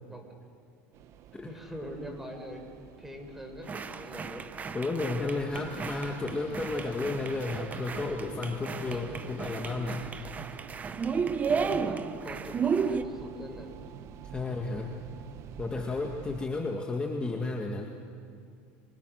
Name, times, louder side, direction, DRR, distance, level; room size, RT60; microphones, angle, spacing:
sound 1, 0.9-16.5, right 9 dB, 50° right, 1.2 m, -48 dB
voice 1, 1.4-2.6 3.0-4.5 8.7-9.3 11.5-13.7, equal, 5° right, 4 dB, 4.4 m, -43 dB
sound 2, 3.7-13.0, right 6 dB, 25° right, 1.0 m, -33 dB
voice 2, 4.7-10.0 14.2-15.0 15.6-17.9, left 3 dB, 15° left, 1 dB, 1.8 m, -32 dB
sound 3, 5.5-10.6, left 7 dB, 70° left, 4.9 m, -55 dB
29.5 x 25.0 x 6.5 m, 2.3 s
supercardioid pair, 125°, 6 cm